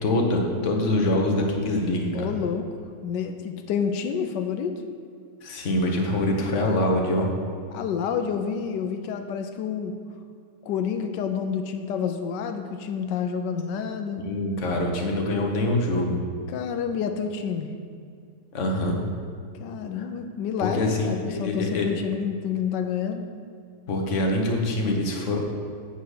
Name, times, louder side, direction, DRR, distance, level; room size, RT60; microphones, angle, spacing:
voice 1, 0.0-2.3 5.4-7.3 14.2-16.1 18.5-19.0 19.9-20.1 20.6-21.9 23.9-25.4, left 1 dB, 50° left, 1 dB, 1.4 m, -24 dB
voice 2, 2.1-2.7 3.0-4.8 7.7-9.9 10.6-14.3 16.5-17.7 19.6-23.3, left 7 dB, 90° left, 6 dB, 1.3 m, -29 dB
8.2 x 5.7 x 6.5 m, 2.2 s
omnidirectional pair, 1.8 m